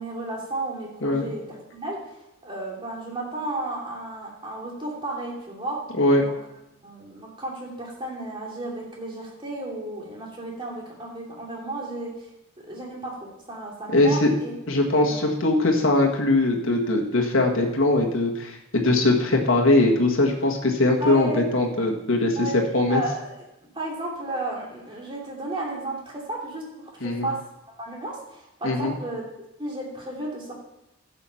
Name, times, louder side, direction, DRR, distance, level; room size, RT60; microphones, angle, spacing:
voice 1, 0.0-5.8 6.2-6.3 6.8-12.3 12.6-14.5 15.0-15.2 21.0-21.5 22.4-23.3 23.7-27.4 27.8-29.2 29.6-30.5, right 2 dB, 25° right, -3 dB, 2.8 m, -33 dB
voice 2, 13.9-14.3 14.7-22.5 22.7-23.0 27.0-27.3 28.6-28.9, left 2 dB, 70° left, 0 dB, 1.6 m, -21 dB
10.5 x 7.0 x 5.7 m, 0.92 s
head